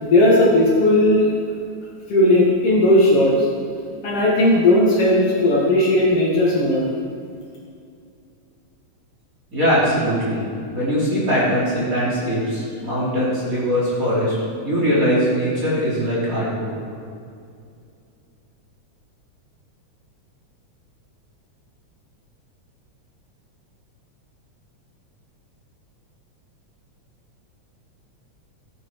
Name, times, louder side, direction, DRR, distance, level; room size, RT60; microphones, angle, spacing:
voice 1, 0.0-1.3 2.1-3.3 4.0-6.8, left 1 dB, 55° left, -5 dB, 2.6 m, -16 dB
voice 2, 9.5-10.5 10.7-14.4 14.6-16.7, equal, 25° right, -8 dB, 3.5 m, -21 dB
15.0 x 9.6 x 4.7 m, 2.4 s
omnidirectional pair, 3.4 m